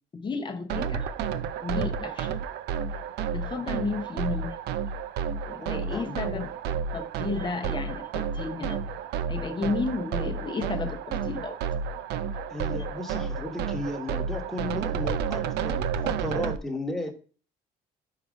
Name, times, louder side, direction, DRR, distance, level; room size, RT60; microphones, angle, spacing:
voice 1, 0.1-1.1 1.6-2.4 3.3-4.6 5.5-8.8 9.3-11.6 16.0-16.1, left 4 dB, 30° left, 4 dB, 0.8 m, -33 dB
sound 1, 0.7-16.6, right 7 dB, 80° right, 0.5 m, -31 dB
voice 2, 5.8-6.5 12.5-17.1, left 1 dB, ahead, 1 dB, 1.3 m, -35 dB
4.9 x 4.8 x 5.1 m, 0.40 s
cardioid pair, 110°, 17 cm